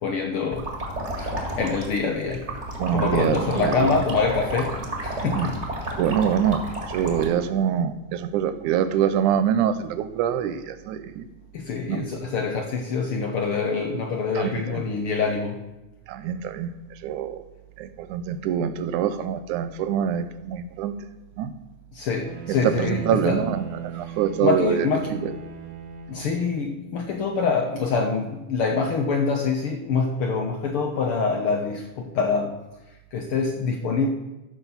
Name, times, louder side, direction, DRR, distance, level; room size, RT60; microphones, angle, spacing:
voice 1, 0.0-0.7 1.1-2.5 2.9-5.6 11.5-15.6 21.9-23.4 24.0-24.2 24.4-25.1 26.1-32.6 33.1-34.1, left 4 dB, 65° left, 3 dB, 1.4 m, -25 dB
sound 1, 0.5-7.3, right 1 dB, 25° right, 1.9 m, -31 dB
voice 2, 2.8-3.9 5.2-5.5 6.0-11.2 11.9-12.1 14.3-14.8 16.1-16.7 17.0-17.4 17.8-20.9 21.4-21.5 22.5-25.4, right 9 dB, 85° right, 12 dB, 2.2 m, -25 dB
Bowed string instrument, 22.2-26.7, right 5 dB, 65° right, 1.9 m, -36 dB
14.0 x 5.9 x 7.0 m, 0.99 s
omnidirectional pair, 3.4 m